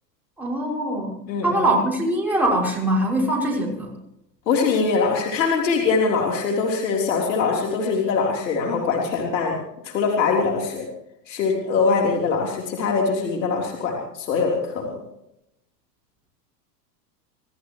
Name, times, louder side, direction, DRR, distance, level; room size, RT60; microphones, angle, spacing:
voice 1, 0.4-3.9, right 1 dB, 5° right, -3 dB, 6.0 m, -23 dB
voice 2, 1.3-1.7 4.5-9.6 9.8-10.9 11.3-15.0, left 4 dB, 85° left, 0 dB, 3.7 m, -22 dB
27.5 x 14.5 x 3.1 m, 0.80 s
hypercardioid pair, 115°, 50 cm